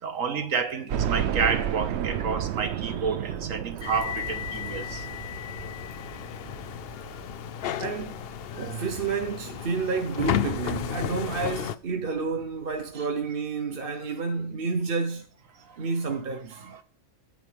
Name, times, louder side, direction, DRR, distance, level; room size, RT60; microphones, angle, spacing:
voice 1, 0.0-5.1 13.0-13.1 15.6-15.8 16.6-16.8, right 5 dB, 90° right, 1.7 m, -30 dB
sound 1, 0.9-9.8 10.3-10.4 10.8-10.9 12.0-12.1 12.4-12.5, right 9 dB, 65° right, 0.8 m, -33 dB
sound 2, 3.8-11.8, left 10 dB, 60° left, 0.7 m, -33 dB
voice 2, 7.8-8.2 8.5-15.3 15.8-16.6, right 4 dB, 45° right, 1.1 m, -30 dB
9.9 x 9.2 x 3.4 m
omnidirectional pair, 1.4 m